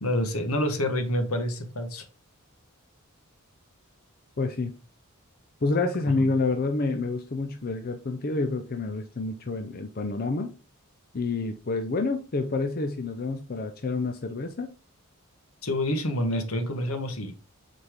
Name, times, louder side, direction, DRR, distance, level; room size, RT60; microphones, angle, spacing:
voice 1, 0.0-2.1 15.6-17.4, left 1 dB, 75° left, 1.3 m, -27 dB
voice 2, 4.4-4.7 5.6-10.5 11.1-14.7, left 3 dB, 45° left, 0.6 m, -28 dB
7.9 x 4.2 x 3.5 m
head